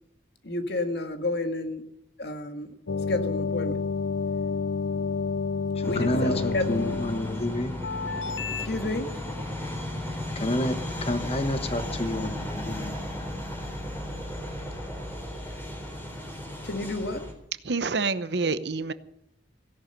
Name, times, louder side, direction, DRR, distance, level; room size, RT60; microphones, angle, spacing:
voice 1, 0.4-1.8 2.2-2.7 3.1-3.8 5.8-6.9 8.6-9.1 16.6-17.2, left 2 dB, 60° left, 7 dB, 1.8 m, -30 dB
sound 1, 2.9-8.7, left 5 dB, 80° left, 0.5 m, -30 dB
voice 2, 5.8-7.7 10.3-13.0 14.2-14.4, left 1 dB, 35° left, 10 dB, 1.3 m, -29 dB
sound 2, 5.8-17.3, left 1 dB, 10° left, 3.5 m, -35 dB
voice 3, 17.6-18.9, right 4 dB, 65° right, 14 dB, 0.9 m, -27 dB
16.5 x 11.5 x 6.7 m, 0.78 s
head